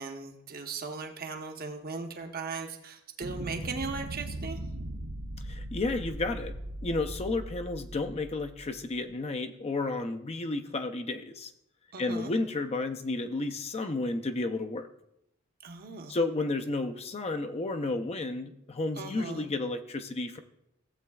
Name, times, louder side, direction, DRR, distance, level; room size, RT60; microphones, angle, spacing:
voice 1, 0.0-4.6 11.9-12.3 15.6-16.2 19.0-19.5, right 4 dB, 45° right, 5 dB, 0.9 m, -38 dB
sound 1, 3.2-9.0, right 1 dB, 75° right, 0.7 m, -39 dB
voice 2, 5.4-6.5 6.8-11.5 12.0-14.9 16.1-20.4, left 2 dB, 30° left, 7 dB, 0.5 m, -32 dB
15.5 x 7.6 x 2.3 m, 0.79 s
head